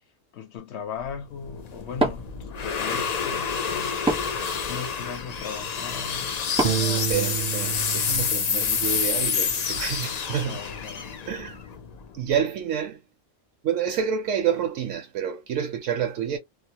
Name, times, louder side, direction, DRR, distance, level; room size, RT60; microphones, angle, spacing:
voice 1, 0.3-3.9 4.6-6.3 10.4-11.2, left 6 dB, 65° left, 0.8 m, -37 dB
sound 1, 1.0-12.3, left 6 dB, 85° left, 0.3 m, -28 dB
Wood, 1.9-7.9, right 2 dB, 5° right, 0.4 m, -33 dB
Piano, 6.6-9.4, right 11 dB, 50° right, 0.6 m, -30 dB
voice 2, 6.8-10.6 11.3-11.6 12.1-13.0 13.6-16.4, right 8 dB, 75° right, 0.9 m, -28 dB
2.4 x 2.0 x 2.7 m
omnidirectional pair, 1.3 m